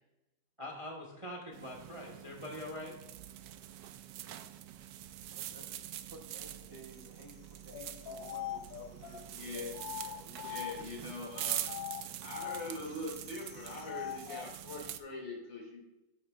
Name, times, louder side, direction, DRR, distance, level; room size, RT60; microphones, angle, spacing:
voice 1, 0.6-3.0, left 1 dB, 20° right, 0 dB, 1.0 m, -43 dB
sound 1, 1.5-15.0, right 12 dB, 75° right, 1.1 m, -44 dB
voice 2, 5.3-5.7 6.1-11.1, right 2 dB, 40° right, -1 dB, 1.1 m, -55 dB
sound 2, 7.7-11.1 11.6-14.5, left 11 dB, 80° left, 0.7 m, -43 dB
voice 3, 9.3-9.7 10.4-11.8 12.2-15.8, left 2 dB, 60° left, -2 dB, 3.1 m, -42 dB
11.5 x 8.9 x 2.4 m, 1.0 s
omnidirectional pair, 2.2 m